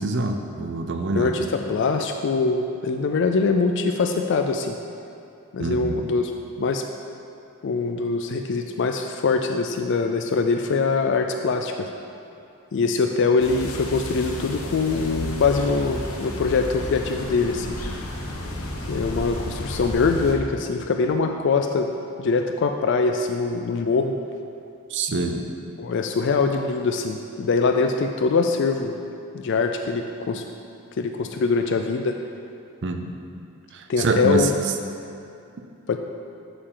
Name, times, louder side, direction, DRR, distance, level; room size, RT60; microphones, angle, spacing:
voice 1, 0.0-1.4 5.6-6.0 24.9-25.4 32.8-33.1 33.7-34.5, right 3 dB, 55° right, 5 dB, 0.6 m, -25 dB
voice 2, 1.2-4.8 5.5-6.3 6.6-6.8 7.6-11.9 12.7-17.8 18.9-21.9 22.2-24.1 25.8-29.0 29.3-30.4 31.0-32.2 33.9-34.5 35.9-36.0, left 4 dB, 55° left, 5 dB, 0.4 m, -23 dB
sound 1, 13.4-20.3, left 1 dB, 70° left, 1.0 m, -32 dB
8.5 x 6.9 x 3.8 m, 2.6 s
head